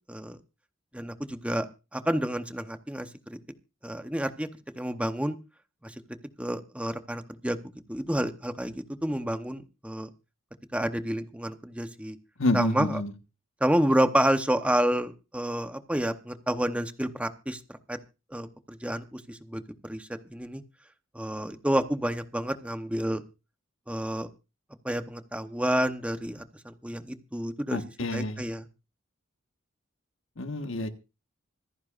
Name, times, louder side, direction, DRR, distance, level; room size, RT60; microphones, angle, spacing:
voice 1, 0.9-1.7 1.9-3.4 3.8-4.5 4.7-5.4 6.4-7.6 7.9-10.1 10.7-12.2 12.5-13.0 13.6-17.6 17.9-18.0 18.3-20.6 21.1-23.2 23.9-24.3 24.8-28.6, right 1 dB, 5° right, 8 dB, 1.0 m, -29 dB
voice 2, 12.4-13.1 27.7-28.5 30.4-30.9, left 1 dB, 70° left, 7 dB, 1.5 m, -28 dB
25.5 x 10.0 x 2.5 m, 0.30 s
head